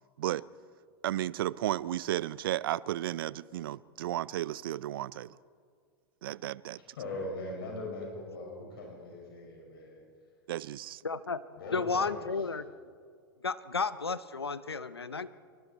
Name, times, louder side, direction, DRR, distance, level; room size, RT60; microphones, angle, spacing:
voice 1, 1.0-5.4 6.2-6.8 10.5-11.0, right 13 dB, 65° right, 0.5 m, -33 dB
voice 2, 6.7-10.0 11.5-12.5, left 2 dB, 70° left, 6.2 m, -41 dB
voice 3, 11.0-11.4 11.7-12.7 13.4-15.3, left 4 dB, 90° left, 0.8 m, -32 dB
27.0 x 24.0 x 4.5 m
figure-of-eight pair, 95°, 13 cm